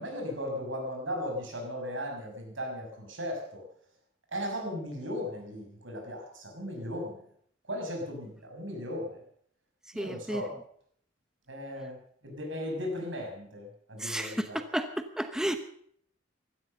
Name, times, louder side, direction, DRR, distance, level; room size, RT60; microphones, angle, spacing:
voice 1, 0.0-3.6 4.3-7.2 7.7-9.2 9.9-10.5 11.5-12.0 12.2-14.6, equal, 85° right, 2 dB, 6.4 m, -36 dB
voice 2, 10.0-10.4 14.0-14.3 14.7-14.9 15.2-15.6, right 1 dB, 5° right, 8 dB, 0.9 m, -31 dB
16.0 x 13.0 x 6.7 m, 0.64 s
head